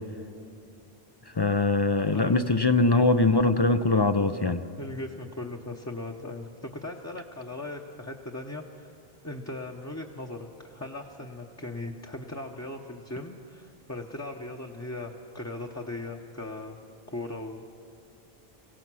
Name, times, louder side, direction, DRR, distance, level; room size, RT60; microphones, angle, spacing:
voice 1, 1.4-4.6, left 3 dB, 35° left, 10 dB, 0.4 m, -22 dB
voice 2, 4.8-8.9 9.2-16.8 17.1-17.6, left 2 dB, 15° left, 0 dB, 0.9 m, -38 dB
26.5 x 17.0 x 6.2 m, 2.4 s
omnidirectional pair, 1.0 m